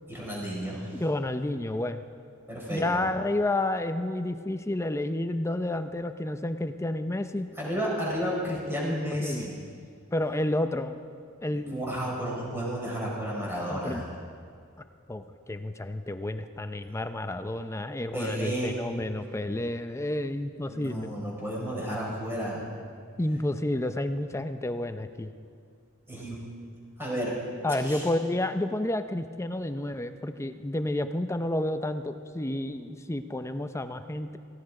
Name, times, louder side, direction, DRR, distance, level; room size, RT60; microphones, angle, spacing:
voice 1, 0.1-1.0 2.5-3.0 7.6-9.6 11.5-14.1 18.1-18.8 20.7-22.7 26.1-26.4 27.0-27.3 27.8-28.0, equal, 10° right, -4 dB, 4.8 m, -32 dB
voice 2, 0.9-2.0 2.7-7.5 8.8-9.5 10.1-11.0 11.4-11.9 13.7-14.0 15.1-21.1 23.2-25.3 27.6-34.4, left 1 dB, 15° left, 9 dB, 0.6 m, -30 dB
17.0 x 16.0 x 4.9 m, 2.2 s
head